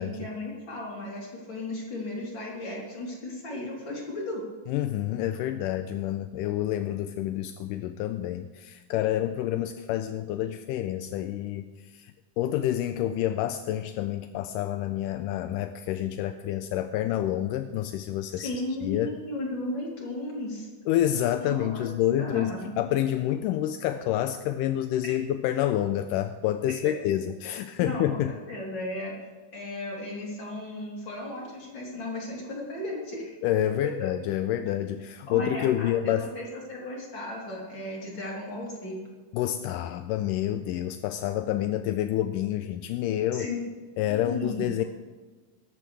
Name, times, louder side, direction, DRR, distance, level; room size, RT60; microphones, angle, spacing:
voice 1, 0.0-4.4 18.4-20.7 21.4-21.9 22.2-22.6 25.0-25.1 27.8-29.1 29.5-33.4 34.0-34.1 35.3-39.0 43.3-43.7 44.1-44.7, left 2 dB, 35° left, -4 dB, 4.2 m, -35 dB
voice 2, 4.7-18.5 18.8-19.2 20.9-28.3 33.4-36.3 39.3-43.5 44.0-44.8, left 12 dB, 85° left, 9 dB, 2.1 m, -28 dB
18.5 x 13.5 x 3.4 m, 1.4 s
omnidirectional pair, 3.8 m